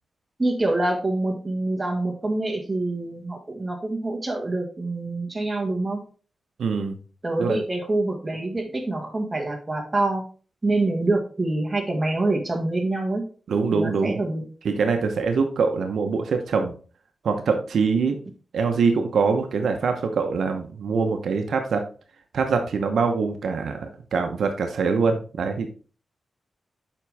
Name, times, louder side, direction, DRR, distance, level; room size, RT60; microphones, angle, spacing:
voice 1, 0.4-6.0 7.2-10.2 10.6-13.2 13.7-14.4, right 2 dB, 20° right, 1 dB, 1.9 m, -26 dB
voice 2, 6.6-7.0 7.4-7.6 13.5-14.2 14.6-16.7 17.2-18.2 18.5-21.8 22.3-25.7, right 5 dB, 80° right, 5 dB, 0.9 m, -23 dB
7.4 x 5.2 x 3.5 m, 0.39 s
wide cardioid pair, 105°, 0 cm